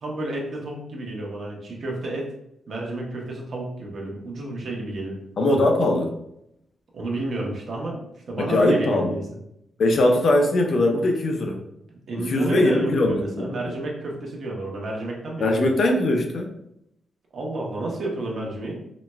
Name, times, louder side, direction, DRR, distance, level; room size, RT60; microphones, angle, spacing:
voice 1, 0.0-2.3 2.7-5.2 5.5-5.6 6.9-8.0 8.3-9.2 12.1-15.7 17.3-18.9, right 2 dB, 50° right, -1 dB, 0.8 m, -30 dB
voice 2, 5.4-6.1 8.4-9.1 9.8-11.6 12.3-13.5 15.4-16.5, left 1 dB, 55° left, 2 dB, 0.5 m, -20 dB
4.0 x 2.1 x 2.2 m, 0.79 s
cardioid pair, 130°, 0 cm